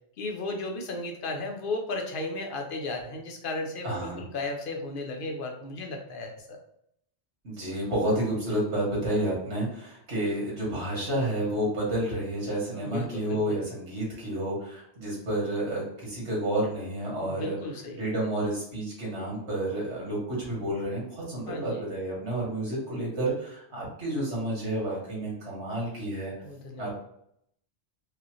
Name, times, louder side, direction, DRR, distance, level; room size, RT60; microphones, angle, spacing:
voice 1, 0.2-6.6 12.7-13.6 17.2-18.0 21.5-21.8 26.4-26.9, left 2 dB, 55° left, 3 dB, 0.8 m, -35 dB
voice 2, 3.8-4.2 7.4-17.6 17.9-26.3 26.8-26.9, right 1 dB, 80° right, -4 dB, 1.9 m, -30 dB
4.8 x 2.2 x 3.0 m, 0.72 s
omnidirectional pair, 1.1 m